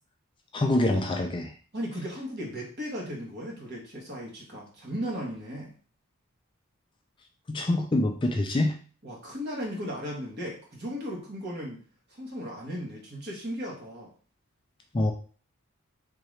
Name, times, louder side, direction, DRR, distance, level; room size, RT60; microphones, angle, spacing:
voice 1, 0.5-1.5 7.5-8.7 14.9-15.1, left 1 dB, 20° left, 2 dB, 0.3 m, -25 dB
voice 2, 1.7-5.7 9.0-11.8 12.1-14.1, equal, 50° right, -2 dB, 1.3 m, -36 dB
3.7 x 2.9 x 3.2 m, 0.39 s
head